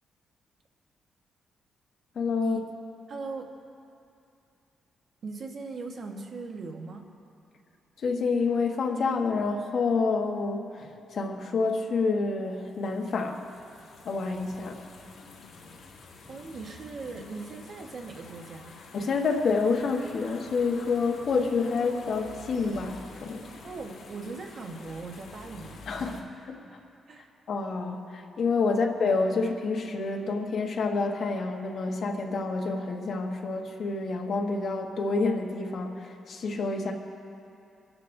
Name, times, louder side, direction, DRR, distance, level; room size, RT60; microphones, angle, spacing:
voice 1, 2.1-2.6 8.0-13.4 14.0-14.8 18.9-23.5 25.9-26.2 26.5-26.6 27.5-36.9, left 4 dB, 50° left, 2 dB, 1.2 m, -28 dB
voice 2, 3.1-3.5 5.2-7.0 16.3-18.7 23.6-26.3 27.1-27.3 28.7-28.8, right 4 dB, 40° right, 2 dB, 1.2 m, -39 dB
sound 1, 12.6-26.2, left 3 dB, 70° left, 1.9 m, -48 dB
27.0 x 12.0 x 2.6 m, 2.6 s
wide cardioid pair, 175°, 0 cm